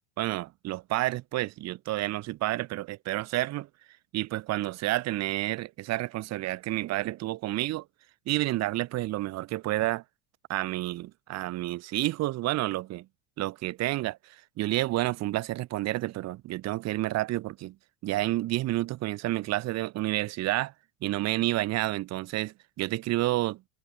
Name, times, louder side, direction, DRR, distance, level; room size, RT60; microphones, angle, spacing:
voice 1, 0.2-3.7 4.1-7.8 8.3-10.0 10.5-13.1 13.4-17.8 18.0-20.7 21.0-23.6, right 17 dB, 45° right, 2.0 m, -30 dB
supercardioid pair, 130°, 38 cm